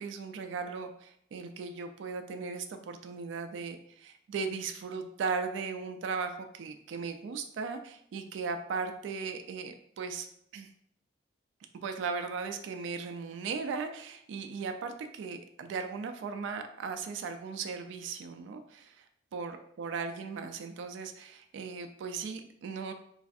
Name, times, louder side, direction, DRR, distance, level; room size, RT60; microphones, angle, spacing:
voice 1, 0.0-10.3 10.5-10.7 11.8-19.0 19.3-22.9, right 5 dB, 85° right, 6 dB, 0.3 m, -37 dB
3.1 x 2.4 x 2.6 m, 0.70 s
head